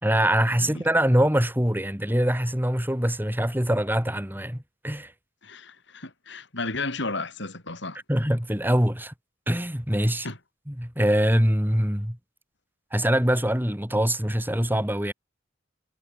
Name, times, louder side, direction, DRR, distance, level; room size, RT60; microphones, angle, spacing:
voice 1, 0.0-5.1 8.1-9.1 9.5-10.3 10.7-12.2 12.9-15.1, equal, 10° right, 5.3 m, -23 dB
voice 2, 5.4-8.0 10.2-10.4, left 3 dB, 65° left, 7.0 m, -33 dB
head